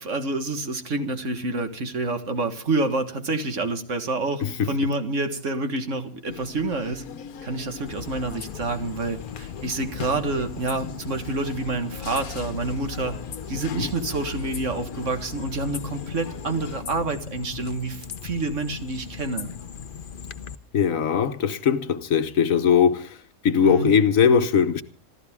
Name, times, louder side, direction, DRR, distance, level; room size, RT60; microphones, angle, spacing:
voice 1, 0.0-7.0 7.4-13.2 13.5-19.5 23.6-23.9, right 2 dB, 60° right, 1.9 m, -28 dB
voice 2, 4.4-4.7 13.7-13.9 20.7-23.2 23.4-24.8, left 7 dB, 70° left, 1.4 m, -20 dB
sound 1, 6.3-16.8, left 7 dB, 90° left, 1.4 m, -41 dB
sound 2, 7.9-20.5, left 7 dB, 45° left, 0.9 m, -38 dB
26.5 x 13.5 x 3.6 m
omnidirectional pair, 1.5 m